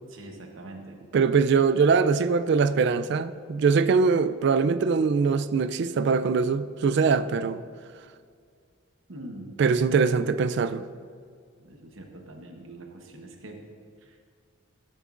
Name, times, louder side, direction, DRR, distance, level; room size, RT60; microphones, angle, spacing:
voice 1, 0.1-1.0 9.1-9.6 11.6-13.6 14.0-14.2, right 1 dB, 75° right, 1.0 m, -43 dB
voice 2, 1.1-7.6 9.6-10.8, right 5 dB, 55° right, 0.3 m, -22 dB
14.0 x 7.3 x 2.5 m
head